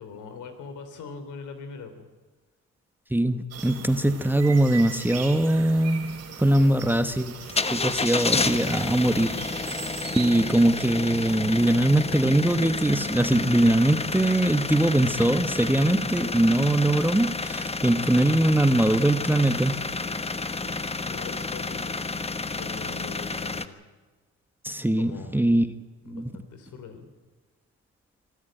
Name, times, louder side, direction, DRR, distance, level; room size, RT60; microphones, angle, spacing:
voice 1, 0.0-2.1 6.6-7.3 20.6-20.8 21.0-22.0 22.5-23.8 25.0-25.4 26.0-27.1, left 5 dB, 80° left, 8 dB, 3.5 m, -42 dB
voice 2, 3.1-7.4 7.7-9.8 10.2-19.8 24.6-25.7 26.1-26.3, right 1 dB, 5° right, 10 dB, 1.1 m, -22 dB
sound 1, 3.5-11.8, right 7 dB, 55° right, 3.4 m, -40 dB
sound 2, 7.5-23.7, left 3 dB, 20° left, 1.1 m, -30 dB
24.5 x 13.5 x 9.0 m, 1.3 s
cardioid pair, 90°, 30 cm